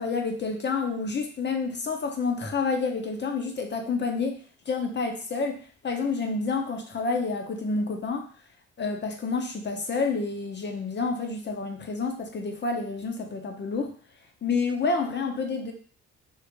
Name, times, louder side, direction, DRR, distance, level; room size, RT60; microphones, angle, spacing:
voice 1, 0.0-4.4 4.7-8.3 8.8-13.9 14.4-15.7, left 4 dB, 35° left, 4 dB, 0.8 m, -29 dB
3.7 x 2.5 x 3.0 m, 0.43 s
cardioid pair, 90°, 30 cm